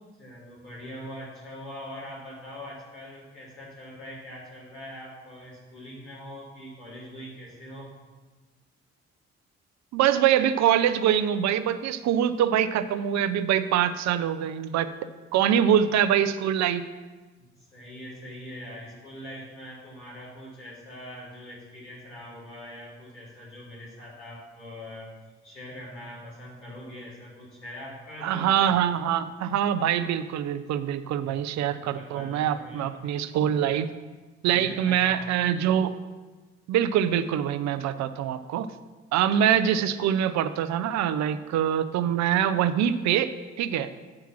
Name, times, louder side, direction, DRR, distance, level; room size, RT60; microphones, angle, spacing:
voice 1, 0.2-7.9 15.5-15.6 17.4-25.1 25.4-28.8 31.2-31.4 31.9-32.9 34.5-35.3, equal, 85° left, -8 dB, 2.5 m, -42 dB
voice 2, 9.9-14.9 15.3-16.8 28.2-33.9 34.4-35.9 36.7-38.7 39.1-43.9, right 9 dB, 55° right, 12 dB, 0.5 m, -24 dB
8.6 x 4.6 x 5.9 m, 1.3 s
figure-of-eight pair, 40°, 34 cm